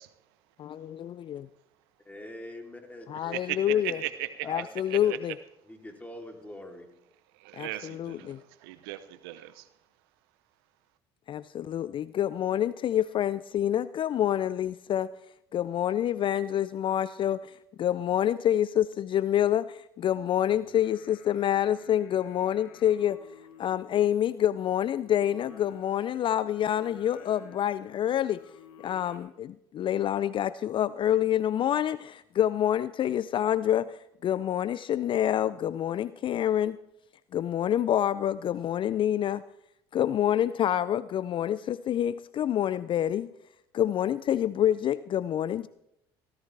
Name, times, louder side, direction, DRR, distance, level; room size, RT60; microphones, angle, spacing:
voice 1, 0.6-1.5 3.1-4.0 4.5-5.3 7.5-8.4 11.3-15.1 15.5-28.4 28.8-36.8 37.3-39.4 39.9-43.3 43.7-45.7, left 11 dB, 45° left, 0.4 m, -27 dB
voice 2, 2.0-3.4 3.7-4.0 4.4-4.7 5.0-5.2 5.7-6.9, left 1 dB, 10° left, 3.2 m, -43 dB
voice 3, 3.1-4.6 4.9-5.0 7.3-9.7, right 15 dB, 80° right, 0.7 m, -37 dB
Singing, 20.4-29.2, left 7 dB, 75° left, 2.2 m, -54 dB
18.0 x 14.0 x 3.4 m
hypercardioid pair, 70°, 12 cm